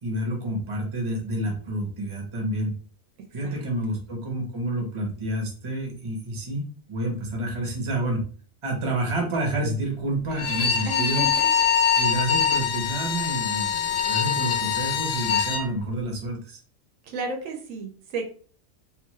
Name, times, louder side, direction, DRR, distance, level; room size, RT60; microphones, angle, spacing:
voice 1, 0.0-2.7 3.3-8.2 8.6-11.3 12.0-16.6, right 1 dB, 30° right, 1 dB, 0.7 m, -29 dB
Bowed string instrument, 10.3-15.7, left 7 dB, 60° left, 0.7 m, -24 dB
voice 2, 10.9-11.5 17.1-18.3, right 3 dB, 75° right, 4 dB, 1.0 m, -33 dB
2.6 x 2.4 x 3.0 m, 0.42 s
omnidirectional pair, 1.4 m